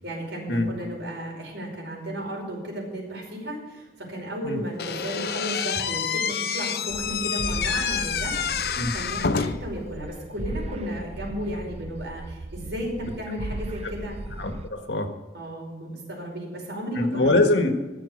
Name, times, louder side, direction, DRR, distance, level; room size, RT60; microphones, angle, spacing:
voice 1, 0.0-14.2 15.3-17.3, equal, 80° right, -1 dB, 5.1 m, -34 dB
Slam / Squeak, 4.8-9.8, left 6 dB, 60° left, 0.6 m, -28 dB
sound 1, 6.9-14.7, right 2 dB, 35° right, 0.5 m, -37 dB
voice 2, 14.4-15.1 16.9-17.7, left 2 dB, 80° left, 5 dB, 1.7 m, -23 dB
14.5 x 7.4 x 6.6 m, 1.2 s
head